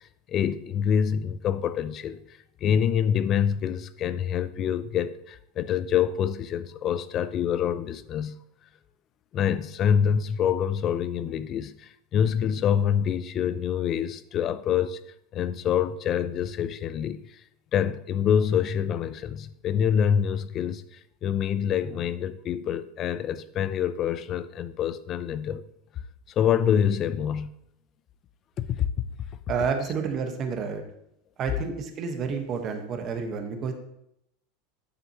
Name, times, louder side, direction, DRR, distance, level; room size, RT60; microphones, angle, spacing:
voice 1, 0.0-2.2 2.6-8.4 9.3-15.0 15.3-17.4 17.7-25.6 26.4-27.5 28.6-28.9, left 8 dB, 40° left, 0.5 m, -26 dB
voice 2, 29.5-30.8 31.4-33.7, right 5 dB, 40° right, 1.2 m, -30 dB
9.5 x 6.6 x 2.9 m
supercardioid pair, 125°, 0 cm